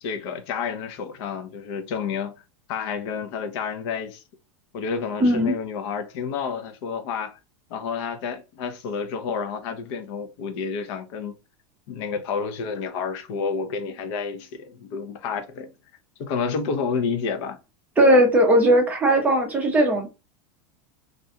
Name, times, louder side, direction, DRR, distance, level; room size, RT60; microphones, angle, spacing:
voice 1, 0.0-2.3 2.7-4.2 4.7-7.4 7.7-11.4 11.9-15.7 16.2-17.6, left 5 dB, 55° left, 0.6 m, -30 dB
voice 2, 5.2-5.5 18.0-20.1, right 1 dB, 10° right, 0.6 m, -18 dB
2.5 x 2.2 x 2.7 m
supercardioid pair, 165°, 17 cm